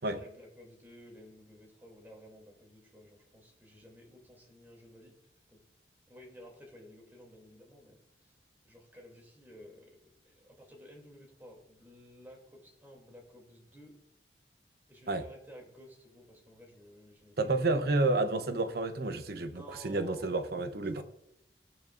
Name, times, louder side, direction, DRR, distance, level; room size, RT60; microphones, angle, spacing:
voice 1, 0.0-5.1 5.5-5.6 6.1-8.4 8.6-10.0 10.2-14.0 14.9-17.8 19.4-20.5 20.9-21.0, equal, 10° right, 2.8 m, -53 dB
voice 2, 17.4-21.0, right 2 dB, 55° right, 0.9 m, -30 dB
17.0 x 9.0 x 2.6 m
head